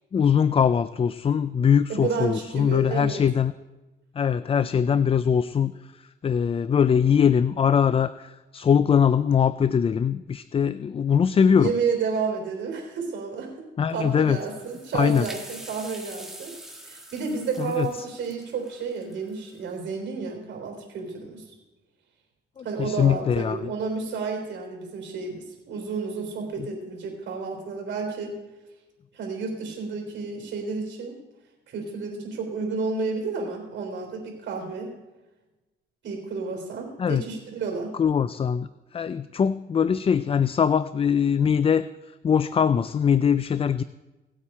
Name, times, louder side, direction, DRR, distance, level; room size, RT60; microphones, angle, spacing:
voice 1, 0.1-3.5 4.2-5.7 6.0-11.7 13.8-14.4 14.9-15.3 17.6-17.9 22.6-23.7 37.0-37.2 38.0-41.9 42.2-43.8, left 7 dB, 30° left, 15 dB, 0.4 m, -22 dB
voice 2, 1.9-3.2 11.6-13.7 13.9-16.5 16.8-21.5 22.6-28.4 29.1-31.2 31.7-34.9 36.0-37.9, right 4 dB, 65° right, 2 dB, 3.6 m, -31 dB
sound 1, 14.2-19.8, right 1 dB, ahead, 2.2 m, -44 dB
17.5 x 8.5 x 4.4 m, 1.1 s
cardioid pair, 90°, 20 cm